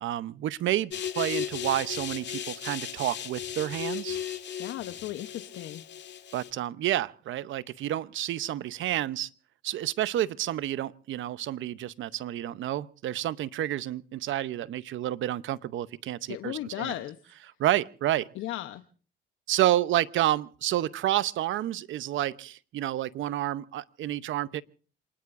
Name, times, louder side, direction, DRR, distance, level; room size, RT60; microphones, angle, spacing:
voice 1, 0.0-4.2 6.3-9.3 9.6-16.9 17.6-18.3 19.5-24.6, right 13 dB, 75° right, 0.8 m, -29 dB
sound 1, 0.9-6.5, left 9 dB, 65° left, 1.8 m, -36 dB
voice 2, 4.6-5.8 16.3-17.2 18.3-18.8, left 14 dB, 85° left, 1.0 m, -36 dB
28.0 x 20.0 x 2.6 m
cardioid pair, 90°, 20 cm